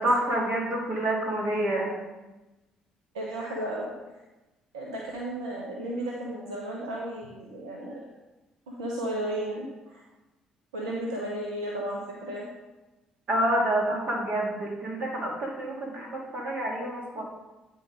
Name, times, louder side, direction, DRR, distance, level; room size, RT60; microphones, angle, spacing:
voice 1, 0.0-1.9 13.3-17.2, right 1 dB, 60° right, -2 dB, 2.6 m, -28 dB
voice 2, 3.1-3.9 4.7-8.1 8.7-10.0 10.7-12.5, right 1 dB, 90° right, -3 dB, 0.9 m, -34 dB
9.2 x 4.6 x 5.0 m, 1.1 s
hypercardioid pair, 55°, 3 cm